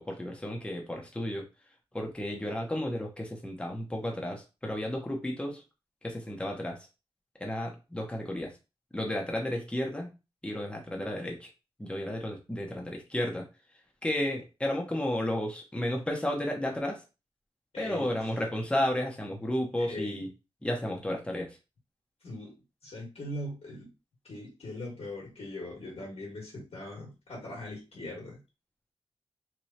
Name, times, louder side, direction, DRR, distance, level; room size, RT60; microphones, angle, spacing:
voice 1, 0.0-1.5 1.9-5.6 6.0-6.8 7.4-8.5 8.9-10.1 10.4-11.5 11.8-13.5 14.0-17.0 17.8-20.3 20.6-21.6, left 1 dB, 10° left, 0 dB, 0.9 m, -32 dB
voice 2, 17.7-18.1 19.8-20.2 22.2-22.6 22.8-23.9 24.2-28.4, left 1 dB, 75° left, -4 dB, 1.8 m, -40 dB
3.4 x 3.2 x 2.9 m, 0.28 s
wide cardioid pair, 95°, 10 cm